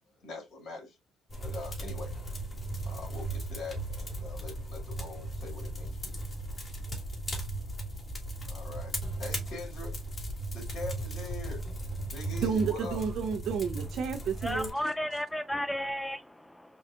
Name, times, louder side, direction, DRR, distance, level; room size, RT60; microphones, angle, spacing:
voice 1, 0.2-1.0 1.4-2.1 2.9-6.3 6.9-7.0 8.5-8.9 9.2-10.0 10.5-11.6 12.1-13.0, left 2 dB, 75° left, 2.3 m, -43 dB
sound 1, 1.3-14.7, right 1 dB, 30° left, 1.7 m, -37 dB
voice 2, 12.3-14.7, right 6 dB, 75° right, 0.8 m, -31 dB
voice 3, 14.4-16.8, equal, 5° left, 0.3 m, -33 dB
4.7 x 2.6 x 2.5 m
cardioid pair, 90°, 0 cm